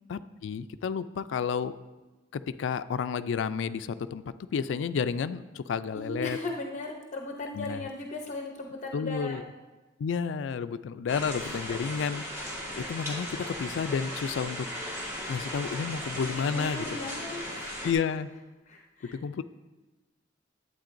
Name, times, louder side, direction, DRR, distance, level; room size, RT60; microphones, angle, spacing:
voice 1, 0.1-1.7 2.3-4.2 4.5-6.4 7.5-7.8 8.9-9.4 10.0-14.7 15.3-16.8 17.8-18.3 19.1-19.4, left 6 dB, 75° left, 13 dB, 0.3 m, -31 dB
voice 2, 5.9-9.4 11.4-11.6 11.8-12.0 16.2-17.7 18.7-19.2, left 2 dB, 40° left, 1 dB, 0.7 m, -37 dB
rain in a hut, 11.1-17.9, equal, 15° right, 1.6 m, -37 dB
11.5 x 8.3 x 2.6 m, 1.2 s
head